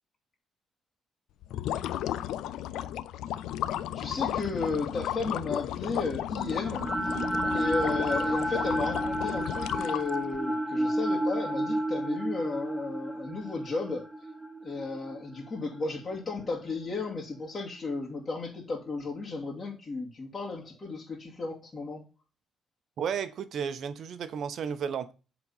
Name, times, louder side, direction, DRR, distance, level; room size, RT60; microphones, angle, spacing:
sound 1, 1.4-10.4, left 12 dB, 85° left, 0.4 m, -34 dB
voice 1, 3.9-7.2 7.5-14.0 14.6-22.0, left 3 dB, 30° left, 2.4 m, -34 dB
sound 2, 6.3-16.5, right 1 dB, 5° right, 1.3 m, -31 dB
voice 2, 23.0-25.1, right 7 dB, 65° right, 0.9 m, -33 dB
7.8 x 4.1 x 5.5 m
cardioid pair, 90°, 0 cm